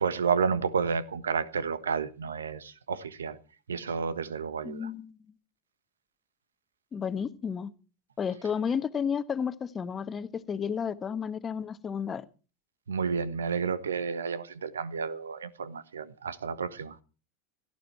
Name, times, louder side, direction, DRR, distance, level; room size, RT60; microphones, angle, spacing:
voice 1, 0.0-3.4 3.7-4.9 12.9-17.0, right 5 dB, 80° right, 1.3 m, -31 dB
voice 2, 4.6-5.2 6.9-7.7 8.2-12.2, left 7 dB, 25° left, 1.4 m, -32 dB
17.5 x 14.0 x 4.6 m
figure-of-eight pair, 85°, 0 cm